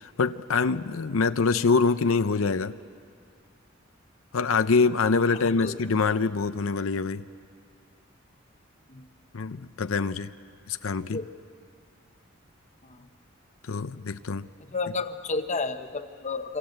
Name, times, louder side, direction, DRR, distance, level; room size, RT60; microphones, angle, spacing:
voice 1, 0.0-2.7 4.3-7.2 9.3-10.3 10.7-11.2 13.7-14.5, left 4 dB, 80° left, 12 dB, 0.6 m, -25 dB
voice 2, 5.4-5.7 8.9-9.0 11.1-11.3 14.7-16.6, left 3 dB, 35° left, 9 dB, 1.0 m, -31 dB
26.5 x 25.5 x 7.9 m, 2.2 s
head